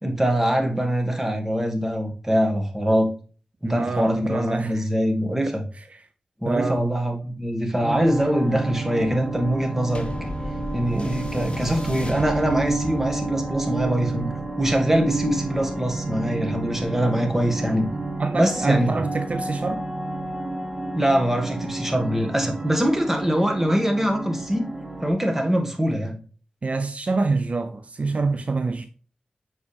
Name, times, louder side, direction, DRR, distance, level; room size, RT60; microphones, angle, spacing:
voice 1, 0.0-3.1 3.6-5.6 6.4-10.3 10.7-14.3 14.6-17.9 18.3-18.9 20.9-24.6 25.0-26.2, equal, 10° right, 1.8 m, -23 dB
voice 2, 3.6-4.9 5.5-6.0 6.5-6.9 18.2-19.9 26.6-28.9, right 3 dB, 55° right, 0.5 m, -26 dB
sound 1, 7.8-25.1, right 3 dB, 30° right, 1.8 m, -31 dB
sound 2, 10.0-18.7 19.5-19.6, left 1 dB, 40° left, 1.3 m, -37 dB
7.4 x 4.7 x 3.4 m
cardioid pair, 55°, 3 cm